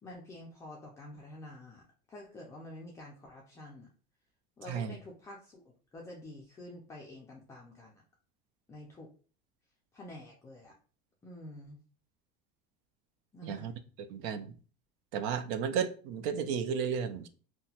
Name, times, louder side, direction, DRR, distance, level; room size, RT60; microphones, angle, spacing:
voice 1, 0.0-1.8 2.1-3.9 4.6-5.6 5.9-8.0 8.7-9.1 9.9-10.7 11.2-11.8 13.3-13.7, left 1 dB, 15° left, 0.4 m, -48 dB
voice 2, 13.4-13.7 14.1-14.5 15.1-17.3, right 7 dB, 65° right, 0.4 m, -33 dB
2.8 x 2.2 x 2.7 m
cardioid pair, 145°, 20 cm